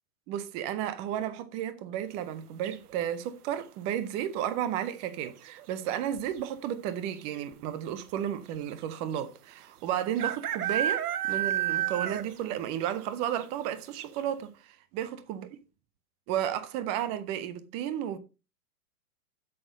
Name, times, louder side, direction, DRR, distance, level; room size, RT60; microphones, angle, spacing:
voice 1, 0.3-15.5 16.3-18.2, right 10 dB, 15° right, 0.4 m, -33 dB
sound 1, 2.6-3.1 4.9-5.3 5.6-5.7 5.9-6.4 7.2-7.3 7.5-7.6 9.2-9.3 10.2-12.5 12.8-12.9 13.4-13.5 14.0-14.1, right 11 dB, 70° right, 0.9 m, -30 dB
7.6 x 6.3 x 5.1 m
hypercardioid pair, 115°, 47 cm